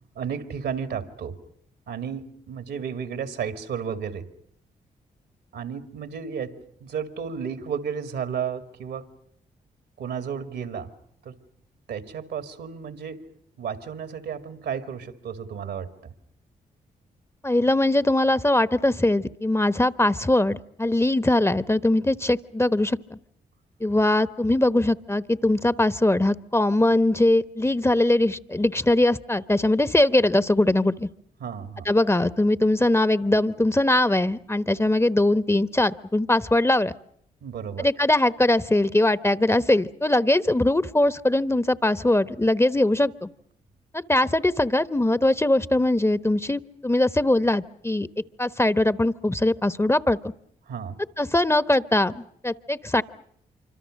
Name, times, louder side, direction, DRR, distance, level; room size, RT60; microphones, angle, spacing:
voice 1, 0.2-1.4 1.9-4.3 5.5-9.1 10.0-10.9 11.2-11.3 11.9-13.2 13.6-16.1 31.4-31.9 37.4-37.9 50.7-51.0, right 7 dB, 75° right, 9 dB, 2.2 m, -33 dB
voice 2, 17.4-23.2 23.8-31.1 31.8-36.9 37.8-43.3 43.9-48.1 48.4-50.2 51.2-53.0, left 1 dB, 15° left, 14 dB, 1.0 m, -21 dB
26.0 x 25.0 x 6.5 m, 0.69 s
hypercardioid pair, 45°, 18 cm